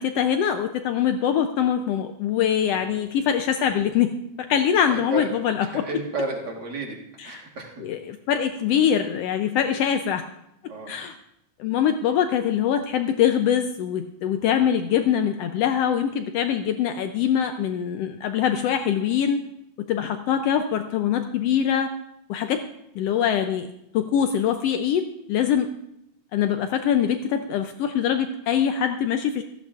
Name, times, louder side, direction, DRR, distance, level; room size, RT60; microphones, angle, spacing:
voice 1, 0.0-5.9 7.2-7.4 7.8-10.2 10.9-11.1 11.6-19.4 19.9-21.9 22.3-22.7 22.9-25.7 26.3-29.4, left 9 dB, 80° left, 7 dB, 1.4 m, -23 dB
voice 2, 4.9-5.3 5.6-7.0 7.2-7.8 9.5-9.7 10.7-10.9, right 1 dB, 40° right, 0 dB, 1.8 m, -32 dB
16.5 x 14.0 x 2.4 m, 0.80 s
omnidirectional pair, 3.4 m